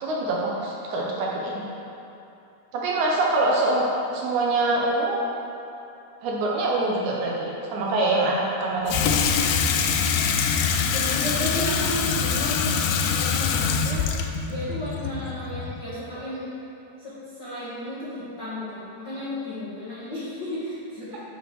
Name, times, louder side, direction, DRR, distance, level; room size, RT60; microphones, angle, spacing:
voice 1, 0.0-1.6 2.7-5.2 6.2-9.1, right 2 dB, 75° right, -3 dB, 2.0 m, -24 dB
Water tap faucet / Sink (filling or washing), 8.9-15.9, left 6 dB, 85° left, 2.3 m, -24 dB
voice 2, 10.8-14.1 14.5-16.5 17.0-21.2, left 1 dB, 65° left, -10 dB, 1.0 m, -33 dB
9.8 x 4.9 x 4.5 m, 2.8 s
omnidirectional pair, 4.0 m